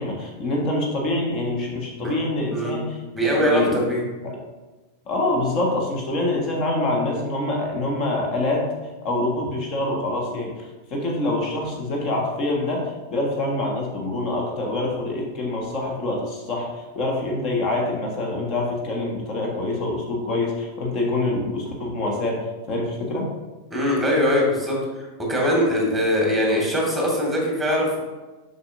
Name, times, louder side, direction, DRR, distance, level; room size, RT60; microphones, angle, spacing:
voice 1, 0.0-2.9 3.3-3.8 4.2-4.4 5.1-8.7 9.0-16.7 16.9-22.4 22.7-23.3, left 2 dB, 35° left, 0 dB, 1.4 m, -25 dB
voice 2, 3.1-4.0 23.7-28.0, equal, ahead, -2 dB, 2.0 m, -22 dB
6.9 x 5.6 x 2.6 m, 1.2 s
figure-of-eight pair, 90°, 0 cm